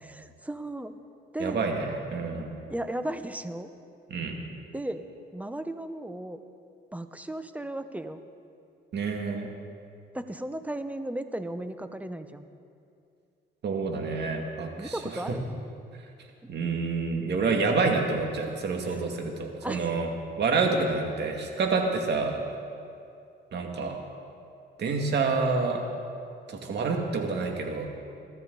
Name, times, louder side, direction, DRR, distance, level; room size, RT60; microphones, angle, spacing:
voice 1, 0.0-0.9 1.3-1.7 2.7-3.7 4.7-5.1 5.3-6.4 6.9-8.2 10.1-12.5 14.8-15.4 16.4-16.5 18.9-19.0 19.6-19.9, right 1 dB, 5° right, 10 dB, 0.9 m, -35 dB
voice 2, 1.4-2.5 4.1-4.4 8.9-9.5 13.6-15.2 16.5-20.1 20.4-22.4 23.5-24.0 24.8-25.8 26.5-27.9, right 4 dB, 60° right, 2 dB, 2.2 m, -28 dB
22.5 x 13.0 x 4.1 m, 2.5 s
cardioid pair, 90°, 20 cm